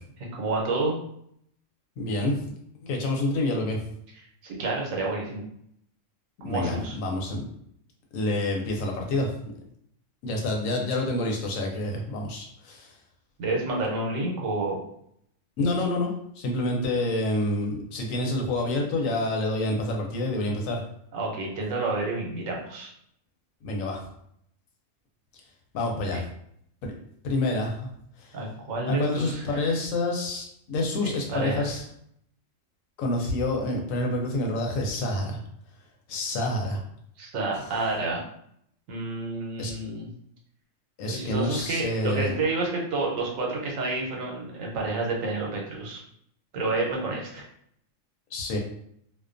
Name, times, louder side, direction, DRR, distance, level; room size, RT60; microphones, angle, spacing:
voice 1, 0.3-0.9 4.4-5.4 6.4-6.9 13.4-14.8 21.1-22.9 26.0-26.2 28.3-29.7 31.0-31.6 37.2-38.2 38.9-40.1 41.0-46.0 46.5-47.4, right 3 dB, 80° right, -1 dB, 1.1 m, -29 dB
voice 2, 2.0-2.4 2.8-3.8 6.4-7.5 8.1-9.3 10.2-12.9 15.6-20.8 23.6-24.0 25.7-26.2 26.8-26.9 27.2-27.9 28.2-28.3 28.9-31.8 33.0-35.4 36.1-36.8 39.6-39.7 41.0-42.3 48.3-48.6, left 2 dB, 85° left, 1 dB, 1.0 m, -28 dB
2.4 x 2.2 x 2.5 m, 0.70 s
omnidirectional pair, 1.4 m